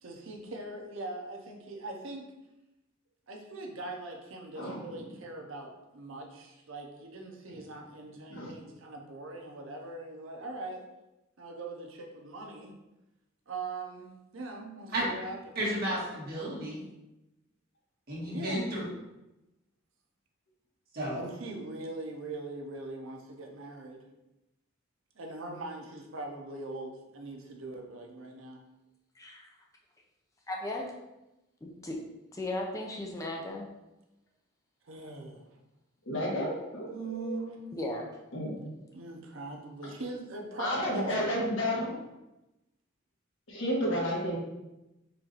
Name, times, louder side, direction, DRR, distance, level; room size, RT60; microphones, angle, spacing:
voice 1, 0.0-2.3 3.3-10.9 11.4-12.7 13.5-15.6 18.3-18.6 21.1-24.1 25.2-28.7 34.8-35.4 36.9-37.8 38.9-41.2, right 2 dB, 85° right, 2 dB, 0.7 m, -41 dB
voice 2, 15.5-16.8 18.1-18.8 20.9-21.2, right 1 dB, 50° right, -6 dB, 1.5 m, -32 dB
voice 3, 29.2-29.5 30.5-30.9 31.6-32.0 32.3-33.7 37.7-38.1, left 1 dB, 15° left, -1 dB, 0.4 m, -36 dB
voice 4, 36.1-37.4 38.3-38.5 40.6-41.9 43.5-44.4, equal, 70° left, -4 dB, 1.3 m, -31 dB
4.4 x 2.5 x 4.0 m, 0.96 s
head